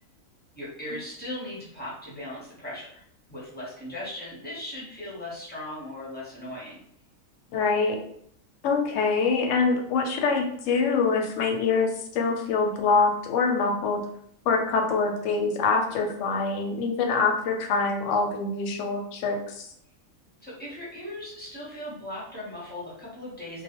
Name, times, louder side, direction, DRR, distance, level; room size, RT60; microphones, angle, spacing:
voice 1, 0.6-3.0 3.3-6.8 20.4-23.6, left 1 dB, 10° left, -7 dB, 0.5 m, -38 dB
voice 2, 7.5-8.0 8.6-14.0 14.5-19.7, left 4 dB, 70° left, 3 dB, 0.8 m, -25 dB
2.3 x 2.1 x 2.8 m, 0.68 s
omnidirectional pair, 1.5 m